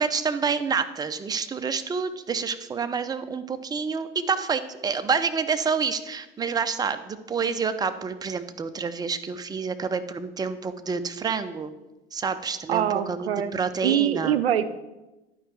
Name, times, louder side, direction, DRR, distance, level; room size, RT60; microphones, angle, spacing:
voice 1, 0.0-11.7 12.1-14.3, right 5 dB, 15° right, 10 dB, 0.5 m, -28 dB
voice 2, 12.7-14.8, right 10 dB, 85° right, 14 dB, 0.5 m, -25 dB
11.5 x 4.7 x 4.7 m, 1.1 s
hypercardioid pair, 75°, 30 cm